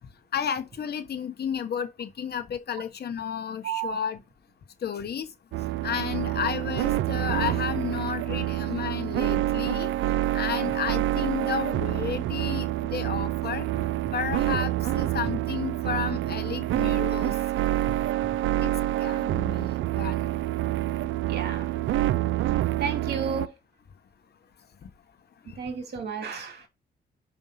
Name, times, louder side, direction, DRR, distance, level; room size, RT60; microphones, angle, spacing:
voice 1, 0.3-4.2 4.8-5.3 5.8-13.7 14.1-17.3 18.6-18.7 19.0-20.2 25.5-25.6, left 8 dB, 55° left, 1.2 m, -32 dB
voice 2, 3.6-4.0 21.3-21.7 22.8-23.5 25.6-26.7, right 6 dB, 55° right, 2.7 m, -32 dB
sound 1, 5.5-23.5, right 14 dB, 75° right, 0.5 m, -27 dB
5.3 x 5.2 x 5.8 m
cardioid pair, 90°, 20 cm